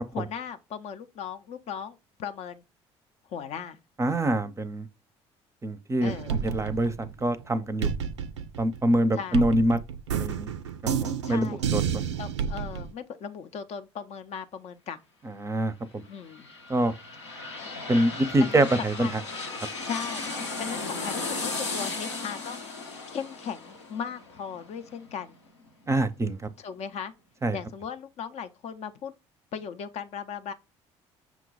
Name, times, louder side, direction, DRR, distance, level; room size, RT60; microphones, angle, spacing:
voice 1, 0.1-2.6 3.3-3.8 6.0-6.3 9.2-9.4 11.2-11.6 12.2-15.0 16.1-16.5 18.4-18.6 19.0-19.1 19.8-20.2 20.6-22.6 23.1-25.4 26.6-27.1 27.5-29.1 29.5-30.5, left 7 dB, 50° left, 0.5 m, -37 dB
voice 2, 4.0-4.9 5.6-7.9 8.6-9.8 10.1-10.5 11.0-12.0 15.2-16.0 16.7-16.9 17.9-19.2 25.9-26.5 27.4-27.6, right 1 dB, 20° right, 0.5 m, -25 dB
sound 1, 6.0-7.4 7.8-12.9, right 7 dB, 85° right, 0.4 m, -30 dB
sound 2, 16.0-25.7 26.1-26.2, left 3 dB, 90° left, 0.8 m, -36 dB
5.9 x 2.2 x 3.9 m
hypercardioid pair, 55°, 14 cm